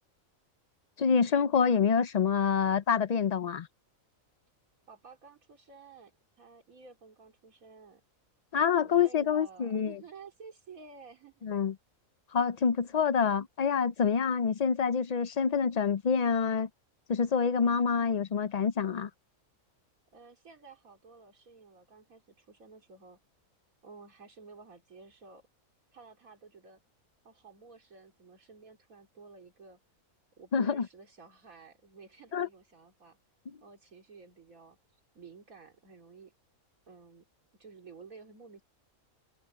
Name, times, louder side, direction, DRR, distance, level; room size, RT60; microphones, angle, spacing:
voice 1, 1.0-3.7 8.5-10.0 11.4-11.7 12.3-16.7 17.1-19.1 30.5-30.9 32.3-32.5, left 6 dB, 65° left, 0.4 m, -27 dB
voice 2, 4.9-8.0 8.8-11.5 20.1-23.2 23.8-25.5 25.9-26.8 27.3-29.8 30.4-33.2 33.6-34.8 35.2-36.3 36.9-37.3 37.5-38.6, right 5 dB, 80° right, 3.5 m, -52 dB
omnidirectional pair, 1.4 m